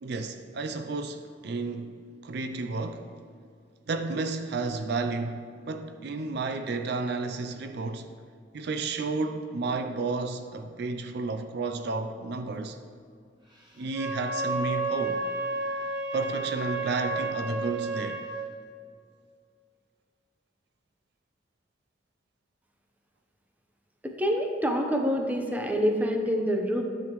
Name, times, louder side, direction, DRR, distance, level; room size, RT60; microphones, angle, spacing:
voice 1, 0.0-2.0 2.2-3.1 3.9-8.1 8.5-12.8 13.8-15.2 16.1-18.3, right 3 dB, 65° right, 0.5 m, -32 dB
Wind instrument woodwind instrument, 13.9-18.3, right 3 dB, 25° right, 1.9 m, -31 dB
voice 2, 24.0-26.8, equal, 10° right, 0.8 m, -26 dB
10.0 x 7.7 x 3.1 m
head